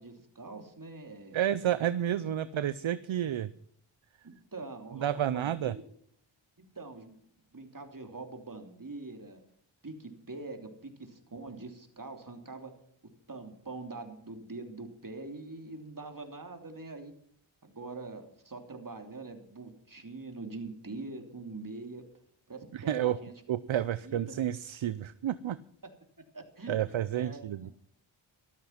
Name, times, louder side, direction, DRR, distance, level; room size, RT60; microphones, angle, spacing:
voice 1, 0.0-1.4 2.4-2.5 4.2-5.8 6.7-7.2 7.5-9.4 9.8-12.7 13.3-17.1 17.6-22.0 22.5-23.3 24.0-24.4 25.8-25.9 26.3-26.8 27.1-27.5, right 3 dB, 40° right, 4 dB, 3.1 m, -44 dB
voice 2, 1.3-3.5 4.9-5.7 22.7-23.2 23.5-25.6 26.7-27.7, right 11 dB, 70° right, 15 dB, 0.7 m, -30 dB
13.5 x 13.5 x 5.9 m, 0.66 s
wide cardioid pair, 60°, 49 cm